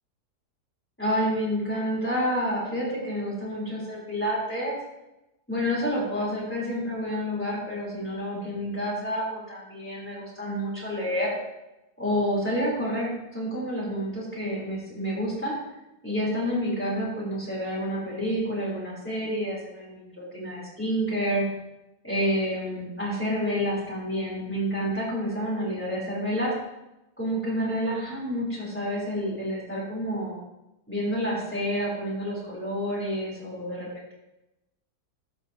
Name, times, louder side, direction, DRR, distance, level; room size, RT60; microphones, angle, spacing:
voice 1, 1.0-4.8 5.5-11.3 12.0-15.6 16.0-21.4 22.0-26.5 27.2-30.4 30.9-34.1, equal, 5° left, -6 dB, 3.3 m, -29 dB
13.5 x 6.1 x 2.8 m, 0.94 s
omnidirectional pair, 1.8 m